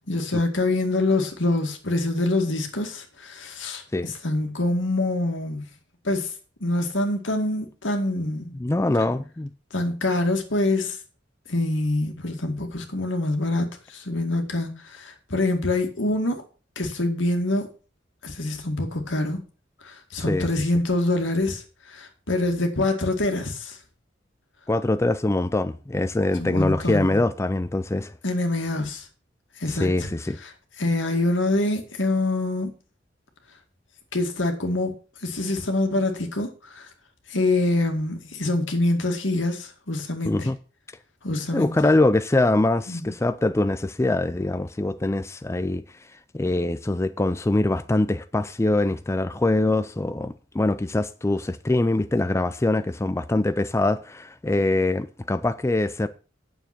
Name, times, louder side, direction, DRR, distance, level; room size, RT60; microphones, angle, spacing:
voice 1, 0.1-5.7 6.0-6.3 6.6-8.6 9.7-11.0 11.5-16.4 16.8-17.7 18.2-19.4 19.8-23.8 26.4-27.2 28.2-29.1 29.6-30.1 30.4-30.5 30.8-32.7 34.1-34.9 35.2-36.9 37.3-40.5 41.2-41.7 42.9-43.1, left 2 dB, 80° left, 2.1 m, -25 dB
voice 2, 8.5-9.5 20.3-20.5 24.7-28.1 29.7-30.4 40.2-40.6 41.5-45.8 46.1-56.1, left 2 dB, 15° left, 0.4 m, -23 dB
9.4 x 7.0 x 6.0 m
head